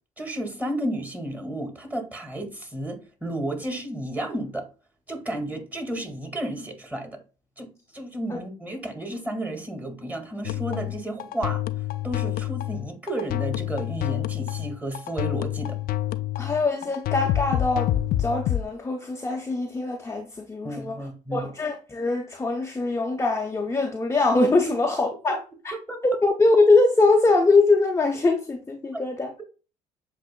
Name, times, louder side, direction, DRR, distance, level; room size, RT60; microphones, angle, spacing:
voice 1, 0.2-4.7 5.1-7.2 7.6-11.6 12.0-15.8 20.6-21.5 25.9-26.0 28.9-29.0, right 1 dB, 10° right, 1.9 m, -32 dB
sound 1, 10.4-18.6, left 13 dB, 55° left, 0.4 m, -28 dB
voice 2, 16.4-21.0 21.3-25.4 26.0-29.3, left 3 dB, 15° left, 0.7 m, -22 dB
7.5 x 2.7 x 2.2 m
hypercardioid pair, 55°, 18 cm